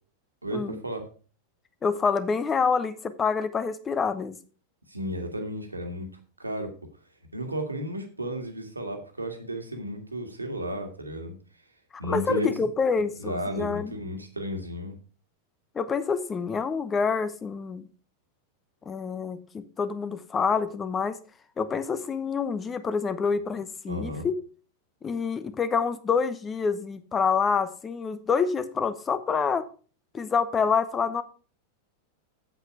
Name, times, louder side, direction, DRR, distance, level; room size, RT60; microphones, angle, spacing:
voice 1, 0.4-1.0 4.9-6.1 6.4-6.7 7.3-11.3 12.0-12.5 13.2-14.9 23.9-24.3, equal, 80° right, 5 dB, 1.8 m, -33 dB
voice 2, 1.8-4.4 11.9-13.9 15.7-17.9 18.8-21.2 21.6-24.4 25.0-29.6 30.1-31.2, left 5 dB, 20° left, 13 dB, 0.9 m, -27 dB
8.2 x 7.9 x 4.7 m, 0.38 s
figure-of-eight pair, 90°, 0 cm